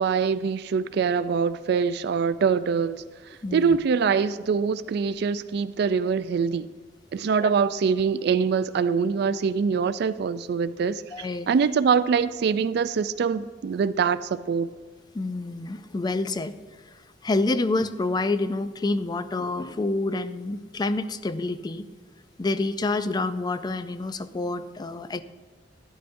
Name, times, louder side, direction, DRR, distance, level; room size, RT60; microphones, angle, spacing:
voice 1, 0.0-3.0 3.5-6.7 7.1-14.7, right 6 dB, 65° right, 0.3 m, -24 dB
voice 2, 3.4-3.8 7.4-7.5 11.1-11.5 15.1-16.6 17.2-21.8 22.4-25.2, left 2 dB, 25° left, 0.4 m, -28 dB
12.0 x 11.0 x 2.6 m
head